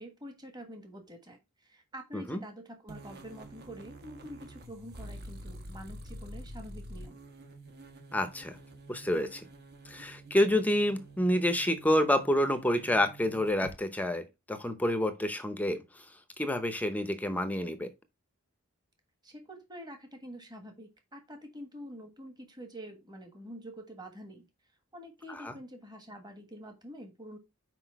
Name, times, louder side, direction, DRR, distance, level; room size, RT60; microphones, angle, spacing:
voice 1, 0.0-7.2 19.2-24.5 24.9-27.4, equal, 20° right, 1.4 m, -46 dB
sound 1, 2.9-13.8, right 1 dB, 50° right, 1.2 m, -48 dB
voice 2, 8.1-8.6 8.9-9.4 9.9-15.8 16.4-17.9 25.3-25.5, left 1 dB, 5° left, 0.6 m, -28 dB
6.0 x 4.8 x 4.5 m
head